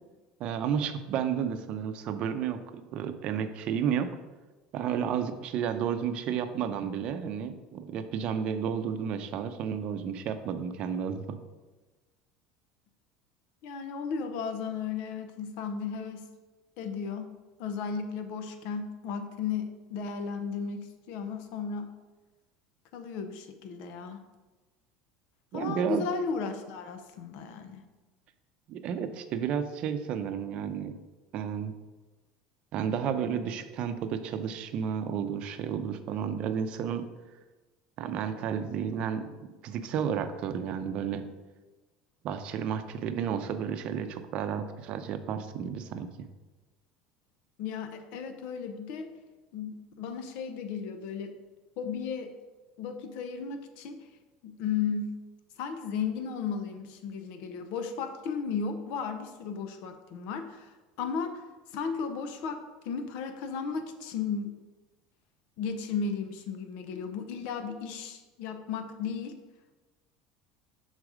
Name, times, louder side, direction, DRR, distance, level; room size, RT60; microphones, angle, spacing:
voice 1, 0.4-4.1 4.7-11.4 25.5-26.0 28.7-31.0 31.3-31.7 32.7-37.0 38.0-39.4 39.6-41.3 42.2-46.3, right 8 dB, 50° right, 9 dB, 0.6 m, -32 dB
voice 2, 13.6-16.3 16.8-17.3 17.6-21.9 22.9-24.2 25.5-27.8 47.6-49.2 49.5-51.3 51.8-52.3 52.8-54.0 54.4-55.1 55.6-61.4 61.7-62.6 62.8-64.6 65.6-69.3, left 6 dB, 70° left, 7 dB, 0.7 m, -35 dB
6.3 x 4.1 x 4.8 m, 1.2 s
supercardioid pair, 125°, 2 cm